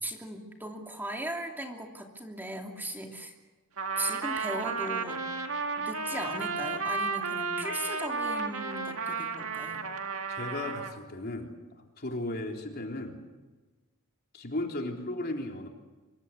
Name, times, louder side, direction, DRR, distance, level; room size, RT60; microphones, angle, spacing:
voice 1, 0.0-3.3 4.0-5.2 5.8-9.8, right 1 dB, 10° right, 2 dB, 2.8 m, -38 dB
Trumpet, 3.8-11.0, right 4 dB, 65° right, 2.2 m, -33 dB
voice 2, 10.3-11.5 12.0-13.2 14.3-15.7, left 1 dB, 45° left, 2 dB, 3.6 m, -35 dB
26.0 x 23.5 x 8.3 m, 1.2 s
head